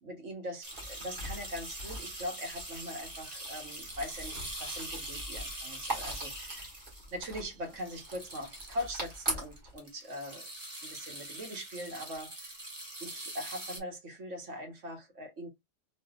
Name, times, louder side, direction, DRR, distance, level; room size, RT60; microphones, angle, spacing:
voice 1, 0.0-6.7 7.1-10.5 10.8-12.5 13.0-15.5, equal, 70° right, 1.6 m, -41 dB
sound 1, 0.6-13.8, right 1 dB, 35° right, 1.2 m, -43 dB
sound 2, 0.7-9.8, equal, 55° right, 2.1 m, -42 dB
4.1 x 2.6 x 2.4 m
omnidirectional pair, 1.3 m